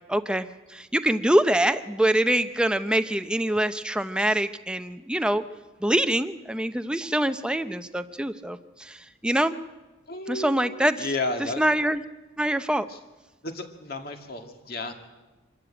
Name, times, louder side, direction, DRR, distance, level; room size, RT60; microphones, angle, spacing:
voice 1, 0.1-5.4 5.8-9.6 10.3-10.9 11.6-12.0 12.4-12.9, right 1 dB, 5° right, 10 dB, 0.6 m, -24 dB
voice 2, 10.1-11.6 12.9-13.0 13.4-14.9, left 2 dB, 50° left, 4 dB, 2.2 m, -32 dB
25.0 x 13.0 x 9.0 m, 1.2 s
head